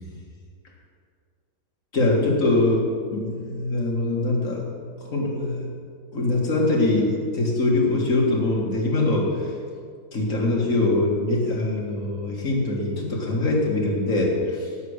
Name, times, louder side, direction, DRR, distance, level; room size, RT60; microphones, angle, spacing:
voice 1, 1.9-2.8 3.1-4.6 5.0-5.8 6.1-9.3 10.1-14.7, left 2 dB, 50° left, -2 dB, 2.3 m, -23 dB
10.0 x 8.2 x 6.4 m, 2.1 s
omnidirectional pair, 1.9 m